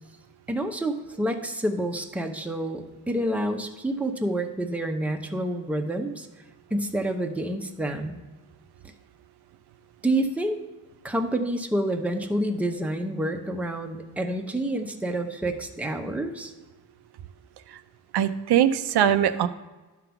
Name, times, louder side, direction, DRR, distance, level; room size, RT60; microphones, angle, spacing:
voice 1, 0.5-6.3 6.7-8.2 10.0-10.6 11.0-16.5, right 1 dB, 5° right, 4 dB, 0.6 m, -28 dB
voice 2, 18.1-19.5, right 10 dB, 75° right, 10 dB, 0.5 m, -21 dB
11.5 x 3.9 x 5.7 m, 1.2 s
wide cardioid pair, 110°, 39 cm